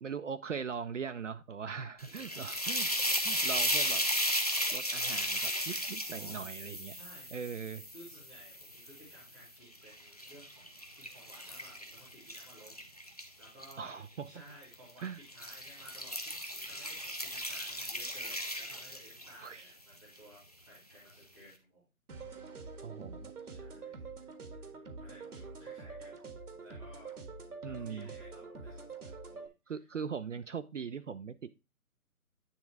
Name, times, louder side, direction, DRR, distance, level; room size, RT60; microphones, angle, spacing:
voice 1, 0.0-2.9 3.2-4.0 4.7-6.9 7.3-7.8 13.8-14.3 15.0-15.2 19.4-19.7 22.8-23.3 27.6-28.1 29.7-31.5, right 6 dB, 55° right, 11 dB, 0.5 m, -40 dB
sound 1, 2.0-9.2 9.8-13.7 14.6-14.9 15.3-19.5, equal, 25° left, 0.5 m, -35 dB
voice 2, 2.1-2.5 6.1-6.5 6.8-7.4 7.9-12.9 13.3-14.0 14.2-21.8 23.4-26.2 26.6-27.1 27.6-29.8, equal, ahead, -5 dB, 0.9 m, -57 dB
sound 2, 22.1-29.5, right 4 dB, 85° right, 1.6 m, -46 dB
9.7 x 3.6 x 4.4 m, 0.27 s
hypercardioid pair, 165°, 44 cm